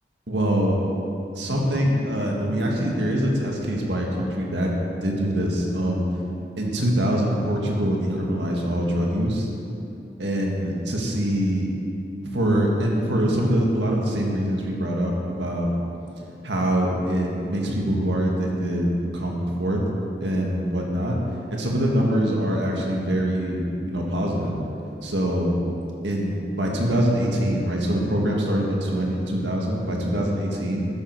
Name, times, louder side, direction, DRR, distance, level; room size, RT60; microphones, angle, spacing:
voice 1, 0.3-0.8 1.3-4.7 5.0-6.1 6.6-9.5 10.2-11.7 12.2-15.7 16.4-18.9 19.1-19.8 20.2-21.2 21.5-24.6 25.0-25.6 26.0-30.9, equal, 90° right, -1 dB, 1.9 m, -24 dB
12.0 x 9.3 x 4.8 m, 2.8 s
head